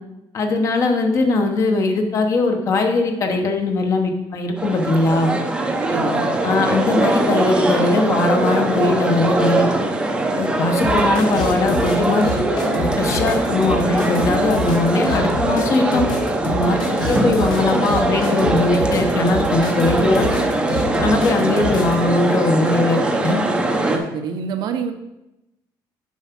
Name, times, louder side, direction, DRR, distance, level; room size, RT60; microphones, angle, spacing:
voice 1, 0.3-5.4 6.4-9.7 10.3-12.3 12.7-16.0 16.5-16.8 17.1-20.3 21.0-23.4, left 2 dB, 35° left, 4 dB, 1.0 m, -20 dB
sound 1, 4.6-24.0, right 2 dB, 10° right, 0.7 m, -21 dB
voice 2, 5.8-6.3 23.8-24.9, right 6 dB, 55° right, 7 dB, 0.8 m, -27 dB
sound 2, 10.8-21.9, left 2 dB, 50° left, 1.4 m, -28 dB
7.3 x 4.8 x 5.9 m, 0.92 s
cardioid pair, 170°, 9 cm